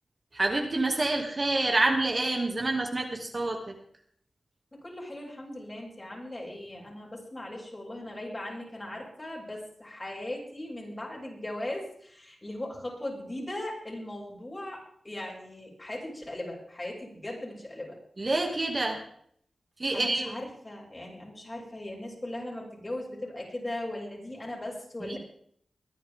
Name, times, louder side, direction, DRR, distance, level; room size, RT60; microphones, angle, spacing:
voice 1, 0.3-3.7 18.2-19.0 19.8-20.3 25.0-25.2, right 2 dB, 40° right, 2 dB, 2.6 m, -27 dB
voice 2, 4.7-18.0 19.9-25.2, left 1 dB, 30° left, -3 dB, 7.5 m, -38 dB
22.5 x 10.5 x 3.7 m, 0.64 s
cardioid pair, 50°, 0 cm